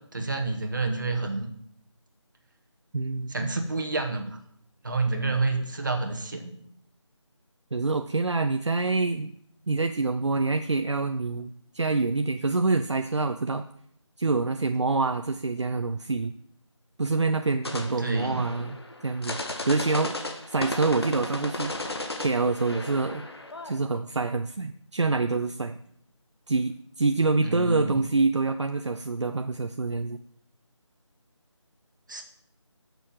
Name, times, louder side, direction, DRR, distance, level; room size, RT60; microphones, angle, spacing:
voice 1, 0.1-1.5 3.3-4.4 4.8-6.5 18.0-18.4 27.4-28.0 32.1-32.2, right 3 dB, 40° right, 4 dB, 1.9 m, -28 dB
voice 2, 2.9-3.5 7.7-9.3 9.7-13.7 14.2-16.3 17.0-20.1 20.5-21.7 22.2-23.2 23.6-25.8 26.5-30.2, right 3 dB, 60° right, 8 dB, 0.7 m, -26 dB
sound 1, 17.6-24.0, left 2 dB, 55° left, 1.6 m, -35 dB
10.5 x 7.0 x 7.5 m, 0.70 s
figure-of-eight pair, 175°, 16 cm